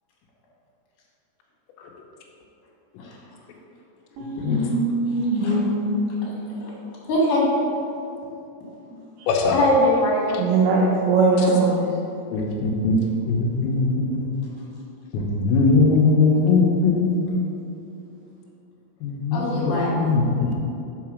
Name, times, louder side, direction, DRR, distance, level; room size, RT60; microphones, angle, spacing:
voice 1, 4.2-6.3 10.4-11.8, right 3 dB, 85° right, -4 dB, 2.2 m, -21 dB
voice 2, 7.1-7.5 9.5-10.4 19.3-19.9, left 1 dB, 60° left, -6 dB, 2.7 m, -22 dB
voice 3, 9.3-9.6 11.4-11.5 12.3-13.0 13.3-14.3 15.1-17.4 19.0-20.5, left 3 dB, 85° left, -2 dB, 2.9 m, -20 dB
5.7 x 4.7 x 6.0 m, 2.7 s
omnidirectional pair, 5.3 m